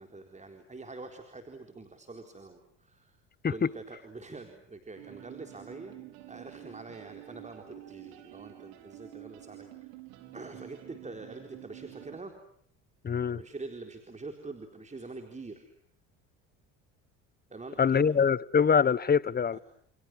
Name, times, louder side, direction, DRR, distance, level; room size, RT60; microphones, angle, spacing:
voice 1, 0.0-3.2 3.5-6.0 6.3-10.0 10.3-12.4 13.3-15.7 17.5-18.1 19.5-19.6, right 3 dB, 20° right, 4.2 m, -45 dB
sound 1, 5.0-12.2, right 15 dB, 75° right, 4.6 m, -49 dB
voice 2, 13.0-13.4 17.8-19.6, left 6 dB, 25° left, 1.2 m, -24 dB
30.0 x 29.5 x 6.3 m
supercardioid pair, 85°, 36 cm